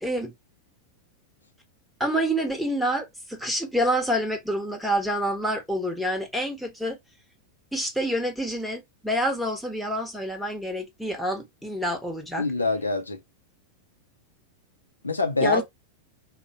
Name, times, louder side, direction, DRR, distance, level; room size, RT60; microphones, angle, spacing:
voice 1, 0.0-0.3 2.0-7.0 7.7-12.5 15.4-15.6, equal, ahead, 0.9 m, -27 dB
voice 2, 12.4-13.2 15.0-15.6, left 3 dB, 80° left, 0.6 m, -25 dB
3.6 x 2.1 x 2.7 m
figure-of-eight pair, 90°, 0 cm